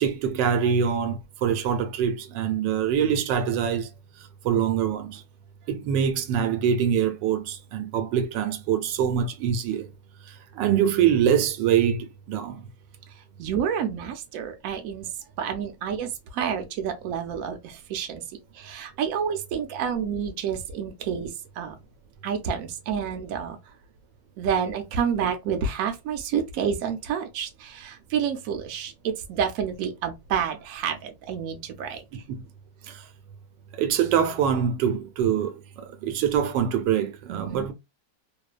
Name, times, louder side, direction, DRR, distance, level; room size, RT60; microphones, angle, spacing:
voice 1, 0.0-3.9 4.2-5.2 5.7-9.9 10.3-12.7 32.3-32.4 32.8-33.0 33.7-37.7, right 8 dB, 85° right, 1.2 m, -24 dB
voice 2, 13.4-15.1 15.4-18.2 18.5-21.7 22.2-23.6 24.4-32.0 37.3-37.7, right 7 dB, 65° right, 0.9 m, -29 dB
3.0 x 2.1 x 2.4 m
omnidirectional pair, 1.9 m